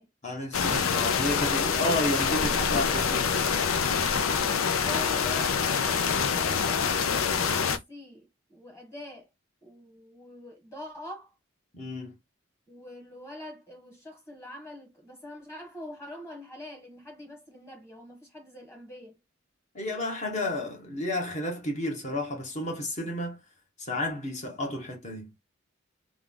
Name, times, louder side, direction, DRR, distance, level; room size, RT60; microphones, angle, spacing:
voice 1, 0.2-3.6 11.7-12.1 19.7-23.4 23.8-25.3, left 1 dB, 35° left, 1.2 m, -32 dB
sound 1, 0.5-7.8, left 6 dB, 85° left, 0.5 m, -26 dB
voice 2, 4.7-7.0 7.4-9.3 9.6-11.3 12.7-19.1, left 1 dB, 15° left, 1.4 m, -44 dB
3.5 x 2.3 x 3.7 m
head